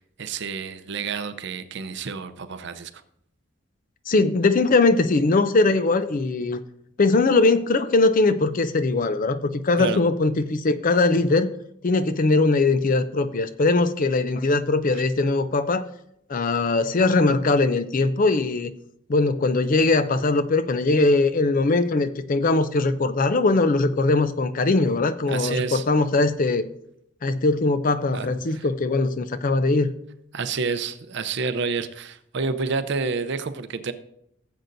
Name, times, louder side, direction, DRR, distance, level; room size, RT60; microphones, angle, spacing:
voice 1, 0.0-2.9 9.8-10.0 14.9-15.0 25.3-25.8 28.1-28.7 30.3-33.9, right 4 dB, 60° right, 10 dB, 0.6 m, -29 dB
voice 2, 4.1-6.6 7.0-11.5 11.8-15.9 16.3-18.7 19.1-26.6 27.2-29.9, left 3 dB, 45° left, 12 dB, 0.5 m, -21 dB
16.0 x 7.7 x 2.6 m, 0.76 s
head